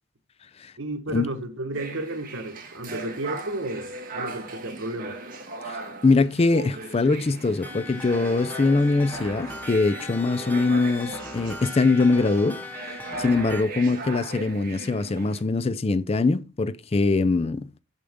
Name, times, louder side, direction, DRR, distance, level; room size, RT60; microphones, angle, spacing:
voice 1, 0.8-5.2, right 1 dB, 75° right, 1.4 m, -32 dB
sound 1, 1.7-15.4, right 3 dB, 45° right, 2.0 m, -38 dB
voice 2, 5.7-12.6 13.2-17.7, left 3 dB, 30° left, 0.4 m, -22 dB
sound 2, 7.6-13.6, left 2 dB, 10° left, 1.0 m, -38 dB
6.7 x 6.5 x 3.6 m
head